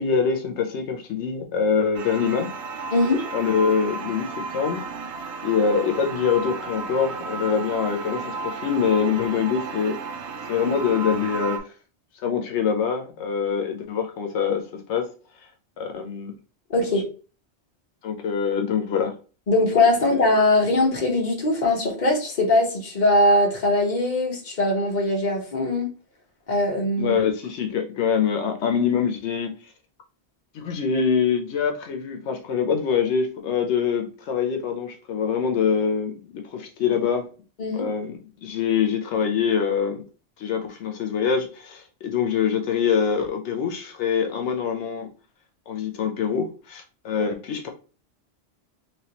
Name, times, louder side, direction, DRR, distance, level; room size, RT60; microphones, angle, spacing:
voice 1, 0.0-2.5 3.3-4.9 5.4-10.0 10.5-11.7 12.2-15.1 15.8-16.3 18.0-19.1 20.1-20.2 27.0-29.5 30.5-37.3 37.7-40.0 40.4-45.1 45.7-47.7, left 6 dB, 90° left, 1.0 m, -24 dB
sound 1, 1.9-11.6, right 4 dB, 75° right, 0.8 m, -33 dB
voice 2, 2.9-3.2 16.7-17.0 19.5-25.9 26.5-27.2 37.6-37.9, left 2 dB, 45° left, 1.1 m, -21 dB
3.3 x 3.0 x 2.8 m
omnidirectional pair, 1.1 m